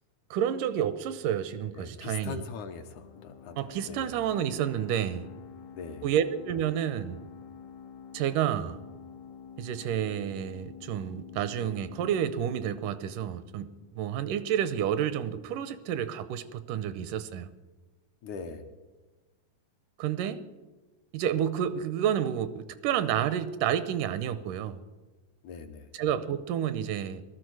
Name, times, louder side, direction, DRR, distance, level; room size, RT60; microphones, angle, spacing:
voice 1, 0.3-2.4 3.6-5.3 6.0-7.2 8.1-8.8 9.6-13.7 14.0-17.5 20.0-20.4 21.1-24.8 25.9-27.2, right 9 dB, 80° right, 12 dB, 2.1 m, -30 dB
voice 2, 1.8-4.2 5.7-6.1 18.2-18.6 25.4-25.9, left 5 dB, 70° left, 6 dB, 2.1 m, -41 dB
sound 1, 3.0-14.3, left 7 dB, 90° left, 1.5 m, -48 dB
18.5 x 13.0 x 4.7 m, 1.2 s
omnidirectional pair, 3.9 m